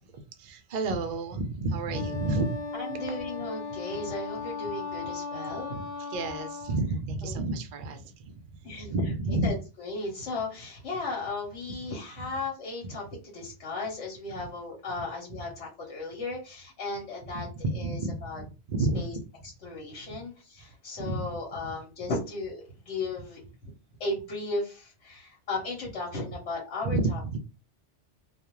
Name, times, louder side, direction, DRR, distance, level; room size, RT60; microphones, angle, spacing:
voice 1, 0.1-2.6 6.0-8.4 8.7-9.5 17.6-19.2 21.0-21.3 26.9-27.4, right 2 dB, 60° right, 7 dB, 0.5 m, -30 dB
Wind instrument woodwind instrument, 1.9-6.8, left 4 dB, 45° left, 0.6 m, -37 dB
voice 2, 2.7-5.8 7.2-7.3 8.6-9.1 9.4-13.1 13.3-17.5 17.7-18.4 18.9-19.1 19.6-23.7 24.0-27.2, left 2 dB, 75° left, -3 dB, 1.2 m, -35 dB
2.3 x 2.2 x 2.9 m, 0.31 s
omnidirectional pair, 1.2 m